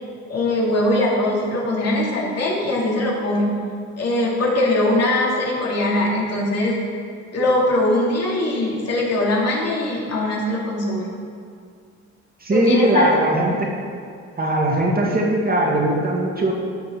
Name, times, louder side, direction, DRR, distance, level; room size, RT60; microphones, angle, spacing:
voice 1, 0.3-3.6 4.0-6.7 7.3-11.1 12.5-13.6, left 1 dB, 55° left, -5 dB, 2.8 m, -21 dB
voice 2, 12.4-13.7 14.4-16.5, right 1 dB, 30° right, -2 dB, 1.9 m, -19 dB
12.0 x 6.3 x 4.6 m, 2.2 s
cardioid pair, 90°, 30 cm